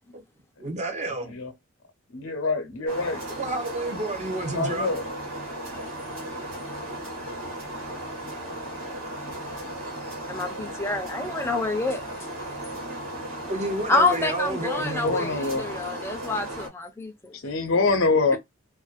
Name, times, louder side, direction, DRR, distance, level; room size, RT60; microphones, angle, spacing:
voice 1, 0.6-1.4 3.4-4.9 12.9-15.3, right 2 dB, 35° right, 0.6 m, -32 dB
voice 2, 2.1-3.2 4.5-5.0 14.8-15.7 17.4-18.4, left 3 dB, 85° left, 0.7 m, -25 dB
sound 1, 2.9-16.7, right 1 dB, 85° right, 1.3 m, -36 dB
voice 3, 10.3-12.0 13.9-17.3, left 3 dB, 10° left, 0.4 m, -27 dB
2.4 x 2.1 x 2.4 m
head